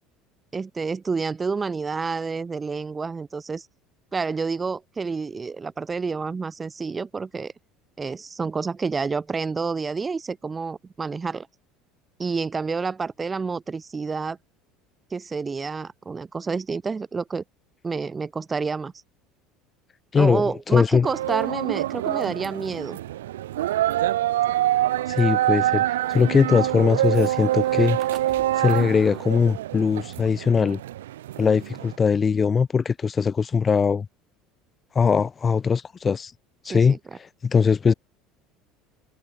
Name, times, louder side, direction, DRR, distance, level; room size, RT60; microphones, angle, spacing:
voice 1, 0.5-3.7 4.1-7.5 8.0-11.5 12.2-14.4 15.1-17.4 17.8-18.9 20.1-23.0 36.6-37.0, right 4 dB, 25° right, 1.5 m, -29 dB
voice 2, 20.1-21.1 25.1-28.0 28.6-30.8 31.4-34.1 34.9-36.3 36.6-37.9, left 6 dB, 30° left, 0.4 m, -21 dB
sound 1, 21.0-31.9, right 14 dB, 80° right, 0.6 m, -26 dB
sound 2, 24.6-29.3, right 10 dB, 45° right, 6.7 m, -46 dB
hypercardioid pair, 70°, 0 cm